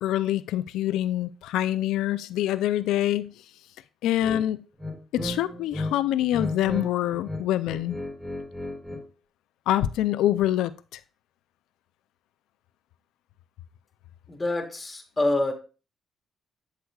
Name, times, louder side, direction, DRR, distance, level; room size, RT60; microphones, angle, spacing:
voice 1, 0.0-3.3 4.0-4.6 5.1-8.0 9.7-11.0, left 13 dB, 90° left, 0.3 m, -25 dB
sound 1, 4.2-4.4 4.8-5.9 6.2-6.9 7.1-9.0, left 1 dB, 5° right, 3.4 m, -33 dB
voice 2, 14.3-15.5, left 2 dB, 20° left, 1.9 m, -26 dB
7.9 x 7.9 x 2.3 m
cardioid pair, 90°, 0 cm